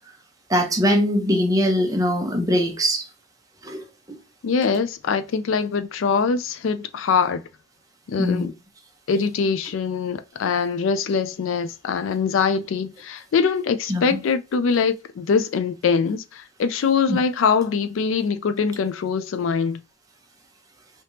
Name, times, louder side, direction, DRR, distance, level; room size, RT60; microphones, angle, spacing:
voice 1, 0.5-3.0 3.6-3.8 8.2-8.5 13.9-14.2 17.1-17.2, equal, 15° right, 0.7 m, -21 dB
voice 2, 4.4-7.4 8.1-8.5 9.1-19.8, left 5 dB, 70° left, 0.3 m, -23 dB
3.3 x 2.8 x 2.7 m
head